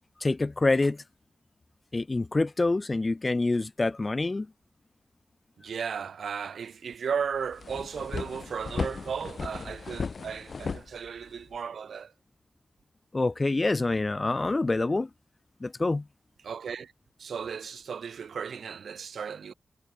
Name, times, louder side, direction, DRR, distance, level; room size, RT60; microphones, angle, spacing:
voice 1, 0.2-1.0 1.9-4.5 13.1-15.1 15.6-16.0, left 2 dB, 25° left, 0.8 m, -26 dB
voice 2, 5.6-12.1 16.4-16.9 17.2-19.5, right 6 dB, 70° right, 5.0 m, -35 dB
sound 1, 6.9-7.0 7.3-11.6, left 5 dB, 45° left, 1.7 m, -36 dB
wide cardioid pair, 165°, 0 cm